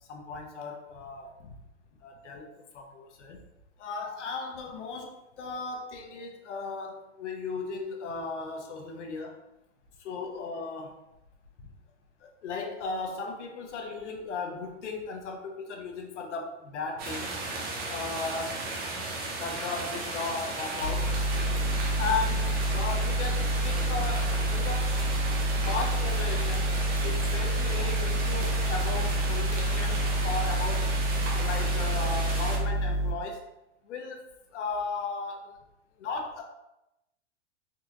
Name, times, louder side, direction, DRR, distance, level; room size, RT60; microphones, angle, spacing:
voice 1, 0.1-1.5 2.0-3.4 3.8-9.4 10.0-11.0 11.6-11.7 12.2-17.3 17.9-18.6 19.4-21.2 22.0-25.0 25.7-26.8 27.0-30.9 31.3-33.4 33.8-34.2 34.5-35.6 36.0-36.4, left 4 dB, 80° left, 2 dB, 0.8 m, -36 dB
sound 1, 17.0-32.6, right 2 dB, 25° right, 0.6 m, -35 dB
sound 2, 20.8-33.1, right 1 dB, 65° right, 1.1 m, -28 dB
3.9 x 2.8 x 2.4 m, 0.89 s
hypercardioid pair, 135°, 35 cm